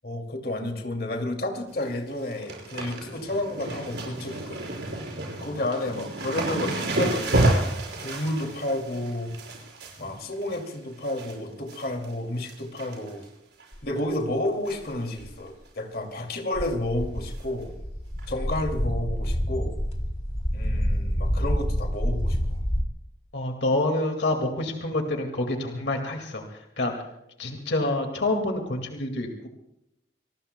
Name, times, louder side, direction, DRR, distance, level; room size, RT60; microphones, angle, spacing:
voice 1, 0.0-4.7 5.4-9.3 10.0-13.2 13.8-17.7 18.3-19.8 20.5-22.6, left 1 dB, 55° left, 3 dB, 2.5 m, -31 dB
sound 1, 1.5-1.9 2.1-11.3 11.7-12.1 12.4-13.3 13.6-13.7 14.6-14.9 15.2-15.3 15.7-15.8 17.3-17.4 18.2-18.3, right 1 dB, 70° right, 5.9 m, -30 dB
sound 2, 13.7-13.9 14.7-15.3 16.5-22.8, equal, 35° left, 2.3 m, -28 dB
voice 2, 23.3-26.9 27.4-29.5, left 2 dB, 75° left, 3 dB, 2.1 m, -27 dB
26.5 x 19.5 x 2.2 m, 0.83 s
head